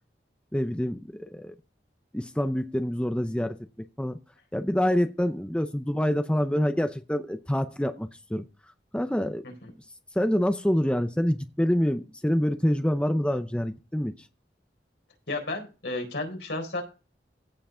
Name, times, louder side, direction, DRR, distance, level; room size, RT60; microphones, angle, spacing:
voice 1, 0.5-1.5 2.1-3.6 4.0-4.2 4.5-8.5 8.9-9.4 10.2-14.3, equal, 5° left, 8 dB, 0.6 m, -26 dB
voice 2, 15.3-16.8, left 2 dB, 75° left, 3 dB, 4.1 m, -33 dB
16.0 x 5.7 x 3.8 m, 0.30 s
head